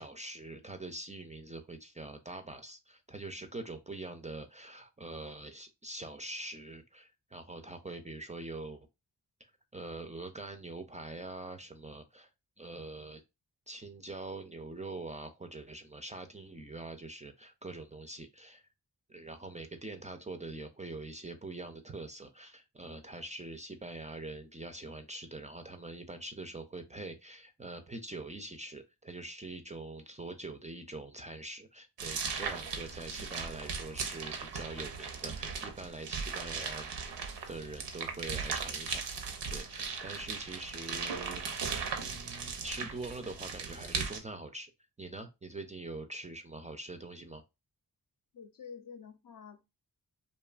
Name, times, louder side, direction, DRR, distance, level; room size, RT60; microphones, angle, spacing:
voice 1, 0.0-8.9 9.4-12.3 12.6-13.2 13.7-18.7 19.1-36.9 37.5-39.0 39.5-44.7 45.0-47.4, right 2 dB, 20° right, 0.4 m, -44 dB
sound 1, 32.0-44.2, right 5 dB, 85° right, 0.6 m, -38 dB
voice 2, 48.3-49.6, left 6 dB, 55° left, 0.6 m, -48 dB
2.6 x 2.2 x 2.3 m
cardioid pair, 50°, 41 cm